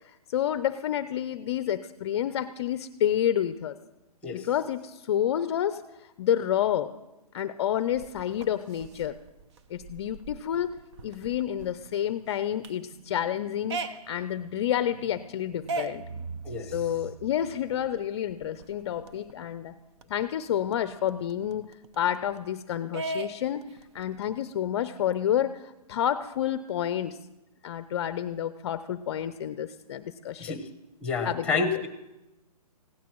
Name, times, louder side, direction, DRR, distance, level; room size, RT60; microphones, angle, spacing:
voice 1, 0.3-3.8 4.3-6.9 7.3-9.2 9.7-10.7 11.0-16.0 16.6-19.8 20.1-23.6 23.9-27.2 27.6-30.6 31.2-31.6, left 10 dB, 45° left, 13 dB, 0.5 m, -29 dB
sound 1, 7.8-19.3 19.7-19.8 20.0-22.5 22.9-24.4, right 3 dB, 45° right, 0.9 m, -40 dB
voice 2, 31.0-31.9, left 4 dB, 5° left, 9 dB, 1.2 m, -28 dB
20.5 x 16.5 x 3.0 m, 0.99 s
hypercardioid pair, 145°, 20 cm